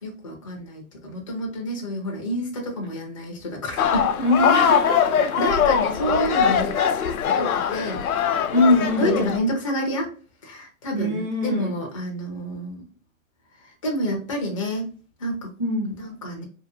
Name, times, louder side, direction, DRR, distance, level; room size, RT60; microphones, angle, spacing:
voice 1, 0.0-4.3 5.4-6.9 7.2-8.1 9.0-10.1 10.4-12.9 13.6-14.9 15.2-15.5 16.0-16.4, equal, 25° left, 0.4 m, -29 dB
sound 1, 3.8-9.4, left 8 dB, 85° left, 0.5 m, -21 dB
voice 2, 4.2-5.0 8.5-9.4 10.9-11.8 15.6-16.0, left 1 dB, 20° right, 0.8 m, -22 dB
2.6 x 2.6 x 2.6 m
hypercardioid pair, 160°, 42 cm